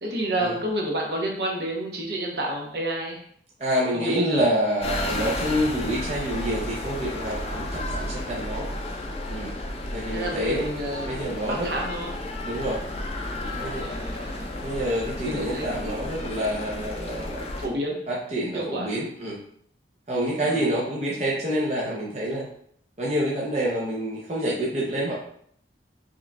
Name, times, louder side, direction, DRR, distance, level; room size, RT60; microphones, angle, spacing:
voice 1, 0.0-3.2 3.9-4.5 9.3-9.6 10.1-11.1 11.5-12.2 13.4-14.5 15.2-15.7 17.6-18.0 18.5-18.9 20.3-20.6, right 1 dB, 65° right, 0 dB, 0.8 m, -30 dB
voice 2, 3.6-8.7 9.3-9.5 9.9-10.7 11.1-11.7 12.4-12.8 13.6-13.9 14.6-17.4 18.1-19.4 20.1-22.5 23.0-25.1, equal, 35° right, -4 dB, 0.6 m, -27 dB
sound 1, 4.8-17.7, left 1 dB, 35° left, 0.4 m, -32 dB
4.7 x 3.1 x 2.2 m, 0.66 s
head